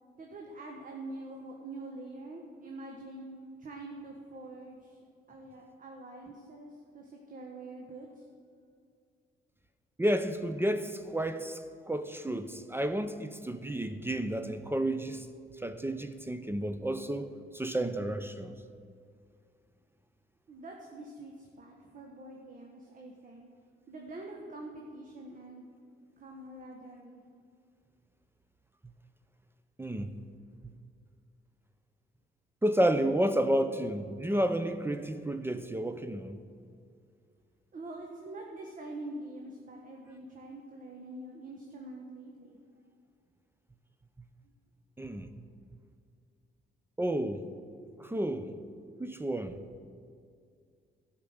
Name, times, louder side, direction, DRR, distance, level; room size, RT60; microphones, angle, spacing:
voice 1, 0.2-5.0 5.3-8.2 20.5-23.5 23.9-25.7 26.2-27.2 37.7-42.6, right 2 dB, 40° right, 1.4 m, -45 dB
voice 2, 10.0-15.3 15.6-18.5 29.8-30.2 32.6-36.4 45.0-45.3 47.0-47.4 48.0-48.5 49.0-49.6, right 1 dB, 10° right, 0.6 m, -31 dB
12.5 x 5.9 x 7.9 m
cardioid pair, 90°, 20 cm